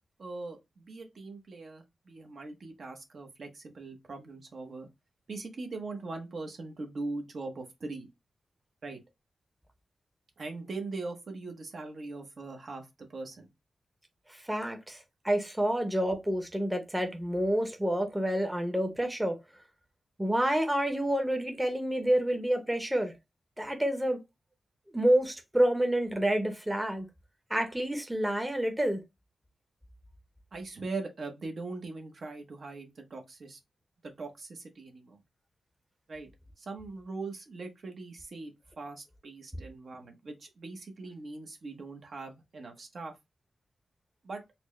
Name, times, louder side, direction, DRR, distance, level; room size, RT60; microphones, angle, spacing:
voice 1, 0.2-4.9 5.3-8.1 8.8-9.0 10.4-13.5 30.5-33.6 34.0-35.2 36.1-36.3 36.6-43.2 44.2-44.4, right 3 dB, 60° right, 0.8 m, -41 dB
voice 2, 14.3-19.4 20.2-23.1 23.6-24.2 24.9-27.1 27.5-29.0, right 1 dB, 10° right, 0.7 m, -28 dB
4.2 x 2.1 x 3.1 m
wide cardioid pair, 100°, 0 cm